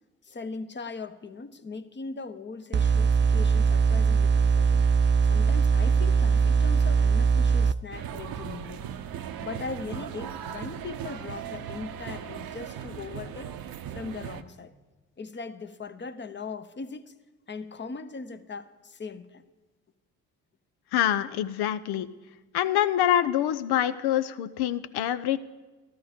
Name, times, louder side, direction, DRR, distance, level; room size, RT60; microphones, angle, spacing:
voice 1, 0.2-4.8 5.1-8.8 9.4-13.5 13.9-14.7 15.2-17.1 17.5-19.4, left 4 dB, 30° left, 11 dB, 0.9 m, -39 dB
sound 1, 2.7-7.7, right 6 dB, 30° right, 0.5 m, -21 dB
sound 2, 7.9-14.4, right 9 dB, 60° right, 0.8 m, -38 dB
voice 2, 20.9-22.1 22.5-25.4, left 11 dB, 70° left, 13 dB, 0.7 m, -25 dB
13.5 x 12.5 x 5.2 m, 1.2 s
hypercardioid pair, 55°, 39 cm